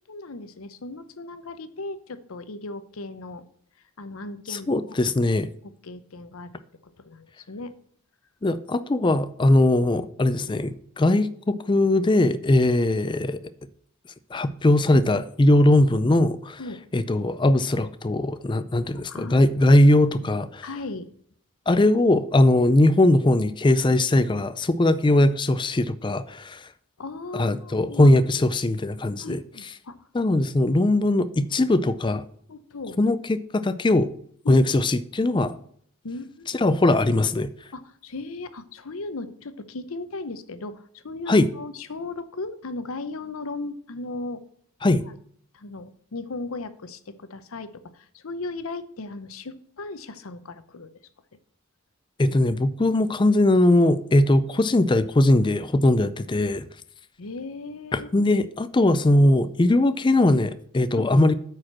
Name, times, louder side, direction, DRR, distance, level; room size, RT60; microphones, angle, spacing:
voice 1, 0.1-3.5 4.0-5.0 5.6-7.7 16.6-16.8 19.1-19.8 20.6-21.1 27.0-28.2 29.2-30.1 32.5-33.0 34.4-34.6 36.0-36.7 37.7-44.4 45.5-51.0 57.2-58.3 60.9-61.2, left 3 dB, 75° left, 0.8 m, -37 dB
voice 2, 4.5-5.5 8.4-13.4 14.3-16.6 16.9-20.6 21.7-26.7 27.3-29.4 30.1-32.2 33.0-34.1 34.5-35.6 36.5-37.5 41.3-41.5 44.8-45.0 52.2-56.7 57.9-61.4, left 1 dB, 20° left, 0.4 m, -20 dB
8.6 x 5.0 x 6.0 m
head